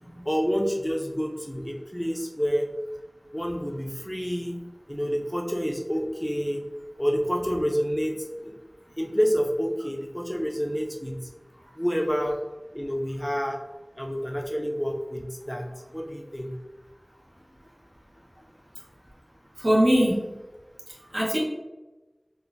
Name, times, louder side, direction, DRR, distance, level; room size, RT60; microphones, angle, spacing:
voice 1, 0.2-2.7 3.3-4.6 4.9-6.6 7.0-8.5 9.0-11.2 11.7-12.4 12.7-13.6 14.0-16.5, equal, 5° left, 0 dB, 0.5 m, -28 dB
voice 2, 19.6-20.2 20.9-21.4, equal, 60° right, -5 dB, 1.1 m, -22 dB
4.2 x 2.5 x 2.5 m, 1.1 s
wide cardioid pair, 40°, 0 cm